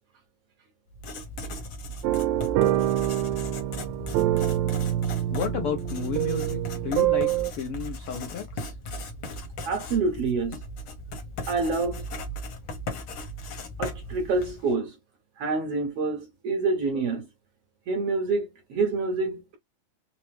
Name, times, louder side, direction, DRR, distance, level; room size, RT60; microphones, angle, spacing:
Writing, 0.9-14.7, left 1 dB, 60° left, 1.4 m, -37 dB
sound 1, 2.0-7.5, right 13 dB, 80° right, 1.9 m, -26 dB
voice 1, 5.3-8.7, left 6 dB, 80° left, 1.2 m, -32 dB
voice 2, 9.6-10.6 11.5-12.0 13.8-14.9 15.4-17.2 17.9-19.6, right 3 dB, 65° right, 1.6 m, -27 dB
4.9 x 2.0 x 3.1 m
omnidirectional pair, 3.6 m